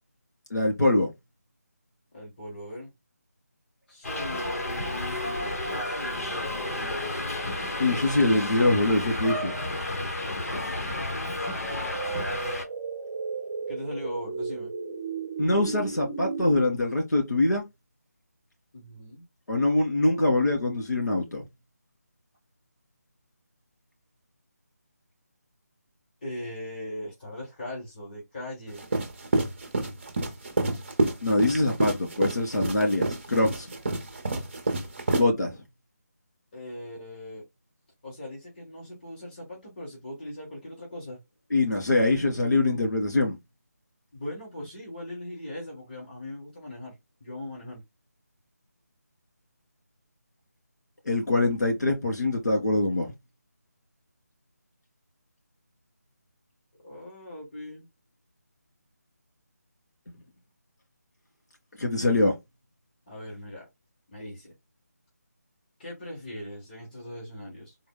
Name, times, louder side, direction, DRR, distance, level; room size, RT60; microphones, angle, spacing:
voice 1, 0.5-1.1 7.8-9.5 15.4-17.7 19.5-21.4 31.2-33.7 35.1-35.6 41.5-43.4 51.1-53.1 61.8-62.4, left 2 dB, 80° left, 2.4 m, -24 dB
voice 2, 2.1-2.9 3.9-7.3 10.4-11.4 13.7-14.7 18.7-19.2 26.2-28.8 36.5-37.5 38.0-41.2 44.1-47.8 56.8-57.8 63.1-63.7 64.1-64.5 65.8-67.7, left 1 dB, 30° left, 1.5 m, -40 dB
Subway metro underground, 4.0-12.6, left 1 dB, 60° left, 1.2 m, -31 dB
sound 1, 11.6-16.6, right 5 dB, 10° right, 0.3 m, -34 dB
sound 2, 28.8-35.2, right 2 dB, 40° right, 0.8 m, -28 dB
3.9 x 2.1 x 3.8 m
figure-of-eight pair, 170°, 9 cm